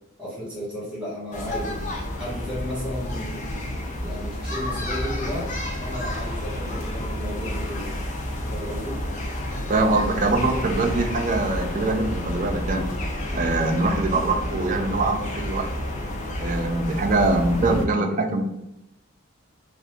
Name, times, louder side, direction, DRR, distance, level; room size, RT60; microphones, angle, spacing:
voice 1, 0.2-1.9 2.2-3.5 4.0-5.5 5.8-7.9 8.5-9.0, equal, 5° right, -7 dB, 1.4 m, -33 dB
sound 1, 1.3-17.9, left 1 dB, 35° left, 0.5 m, -30 dB
voice 2, 9.7-12.9 13.3-15.7 16.4-18.4, right 2 dB, 35° right, 4 dB, 0.4 m, -23 dB
2.6 x 2.5 x 3.5 m, 0.88 s
head